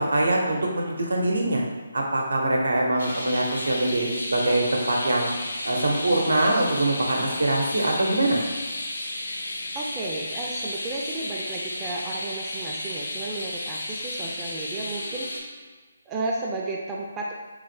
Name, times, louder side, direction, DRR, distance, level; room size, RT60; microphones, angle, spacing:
voice 1, 0.0-1.6 1.9-5.3 5.6-8.4, right 1 dB, 85° right, 0 dB, 0.7 m, -23 dB
sound 1, 3.0-15.4, left 1 dB, 85° left, 0.6 m, -33 dB
voice 2, 9.7-15.3 16.1-17.3, right 2 dB, 15° right, -2 dB, 0.3 m, -33 dB
3.5 x 2.1 x 3.2 m, 1.4 s
figure-of-eight pair, 155°, 0 cm